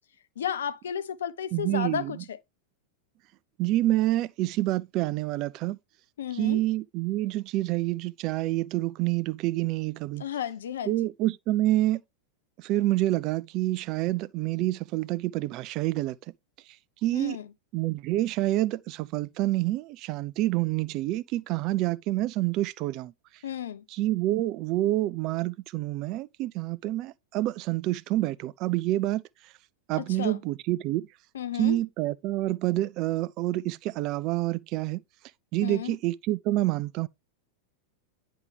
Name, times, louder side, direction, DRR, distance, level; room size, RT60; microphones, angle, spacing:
voice 1, 0.4-2.4 6.2-6.6 10.2-11.0 17.1-17.5 23.4-23.8 30.0-30.4 31.3-31.8 35.6-36.0, left 9 dB, 65° left, 0.7 m, -33 dB
voice 2, 1.5-2.2 3.6-5.8 6.3-10.3 10.9-12.0 12.6-16.2 17.0-17.4 17.7-23.1 23.9-29.5 29.9-31.0 31.5-35.0 35.5-37.1, right 16 dB, 40° right, 0.4 m, -27 dB
9.7 x 5.2 x 3.3 m
figure-of-eight pair, 90°, 0 cm